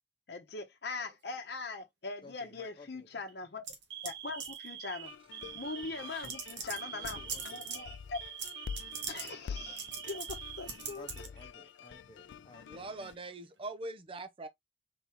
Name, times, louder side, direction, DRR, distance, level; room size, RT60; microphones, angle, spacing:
voice 1, 0.3-3.6 4.0-5.1 5.5-7.2 7.4-8.2 9.1-11.1 11.4-11.5 11.9-12.0, left 3 dB, 65° left, 0.9 m, -41 dB
Alarm, 1.0-1.5 2.4-2.7 3.1-3.3 3.9-11.4 11.7-11.9 12.8-13.5, right 9 dB, 70° right, 0.9 m, -47 dB
voice 2, 2.2-3.1 6.9-7.8 10.9-13.0, left 2 dB, 30° left, 1.1 m, -55 dB
sound 1, 3.7-4.1 4.4-4.7 5.6-5.7 6.2-7.8 8.4-8.5 8.8-9.3 9.8-10.4 10.7-11.3, right 6 dB, 90° right, 1.3 m, -40 dB
sound 2, 5.0-13.1, left 7 dB, 80° left, 0.3 m, -47 dB
voice 3, 12.7-14.5, right 2 dB, 30° right, 0.6 m, -42 dB
3.9 x 3.5 x 2.9 m
head